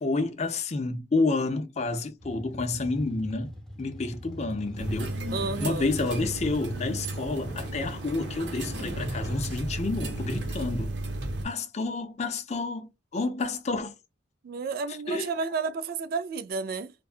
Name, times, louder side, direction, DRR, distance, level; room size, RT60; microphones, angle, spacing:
voice 1, 0.0-3.5 3.8-5.1 5.6-10.9 11.4-13.9 15.1-15.3, left 3 dB, 35° left, 0.5 m, -29 dB
sound 1, 2.2-10.4, equal, 5° left, 0.7 m, -43 dB
sound 2, 4.8-11.4, right 2 dB, 70° right, 0.9 m, -34 dB
voice 2, 5.3-5.9 14.4-16.9, right 4 dB, 50° right, 0.3 m, -31 dB
2.6 x 2.2 x 2.4 m
head